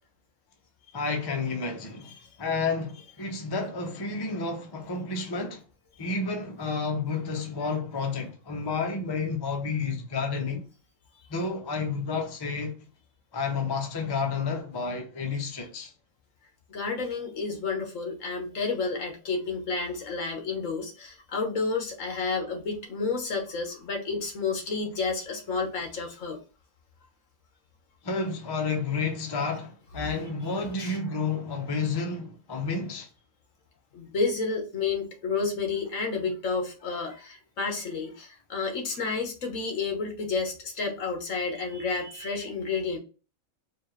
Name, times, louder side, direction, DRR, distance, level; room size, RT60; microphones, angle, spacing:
voice 1, 0.9-2.1 2.4-5.6 6.0-10.7 11.3-12.8 13.3-15.9 28.0-33.1, left 4 dB, 25° left, 0.5 m, -30 dB
voice 2, 16.7-26.4 30.8-31.0 33.9-43.0, left 4 dB, 70° left, 1.4 m, -30 dB
4.5 x 2.4 x 3.1 m
omnidirectional pair, 1.4 m